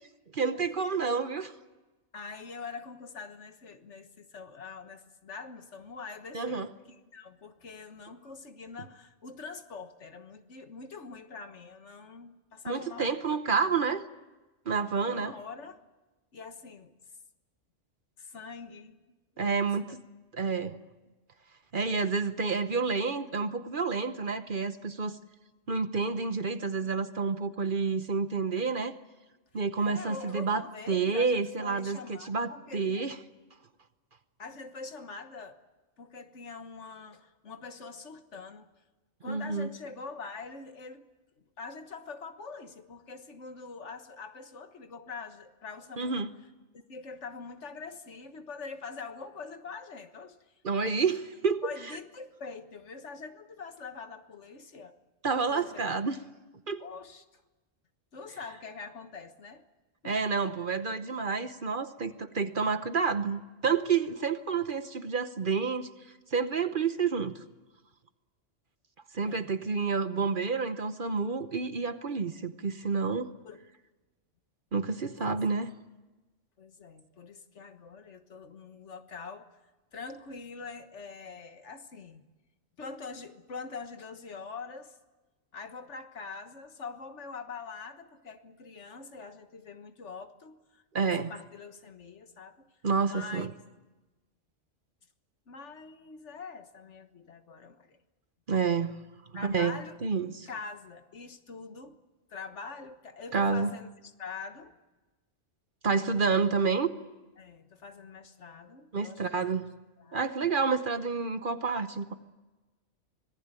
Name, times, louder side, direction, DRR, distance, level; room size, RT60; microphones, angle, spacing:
voice 1, 0.3-1.5 6.3-6.7 12.6-14.0 14.7-15.3 19.4-20.0 20.3-20.8 21.7-25.2 25.7-28.9 29.5-30.6 30.9-33.2 39.3-39.7 46.0-46.3 50.6-51.7 55.2-56.2 56.7-56.8 60.0-65.9 66.3-67.4 69.1-73.3 74.7-75.7 90.9-91.3 92.8-93.5 98.5-98.9 99.3-100.5 103.3-103.7 105.8-106.9 108.9-109.7 110.1-112.1, right 5 dB, 45° right, 11 dB, 1.0 m, -29 dB
voice 2, 2.1-6.6 6.9-13.2 15.1-15.8 16.3-16.9 18.2-19.0 19.4-19.8 29.8-33.1 34.4-35.6 36.0-38.7 39.2-41.1 41.4-46.3 46.7-50.4 51.6-54.9 55.3-55.8 56.8-57.2 58.1-59.6 60.0-60.2 69.3-69.5 73.4-73.6 75.2-75.3 76.6-79.5 79.9-82.2 82.8-85.0 85.5-92.7 93.0-93.5 95.5-98.0 99.3-100.0 100.5-102.0 102.3-104.8 107.4-109.5 110.0-110.2, left 4 dB, 65° left, 8 dB, 1.7 m, -44 dB
25.5 x 19.0 x 9.0 m, 1.1 s
omnidirectional pair, 1.3 m